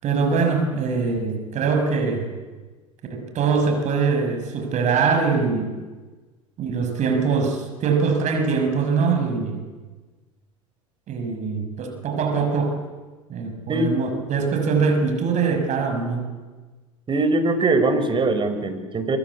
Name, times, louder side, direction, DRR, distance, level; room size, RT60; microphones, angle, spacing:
voice 1, 0.0-2.3 3.1-5.8 6.6-9.6 11.1-12.8 13.3-16.3, right 5 dB, 45° right, 5 dB, 6.5 m, -23 dB
voice 2, 17.1-19.2, right 2 dB, 30° right, 10 dB, 5.4 m, -21 dB
25.0 x 25.0 x 8.5 m, 1.3 s
hypercardioid pair, 80°, 17 cm